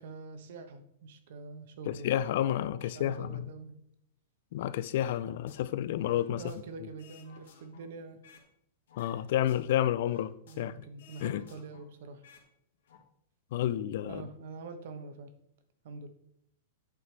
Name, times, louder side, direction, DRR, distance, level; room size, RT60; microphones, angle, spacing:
voice 1, 0.0-2.1 2.7-3.8 6.0-8.2 10.5-12.2 14.0-15.3 15.8-16.1, right 4 dB, 60° right, 1.1 m, -45 dB
voice 2, 1.9-3.5 4.5-6.4 9.0-10.7 11.2-11.4 13.5-14.2, left 11 dB, 55° left, 0.4 m, -30 dB
sound 1, 5.0-5.6 6.0-8.5 8.9-10.7 11.0-12.5 12.7-13.0, left 5 dB, 80° left, 1.9 m, -58 dB
8.3 x 4.9 x 4.7 m
supercardioid pair, 155°, 0 cm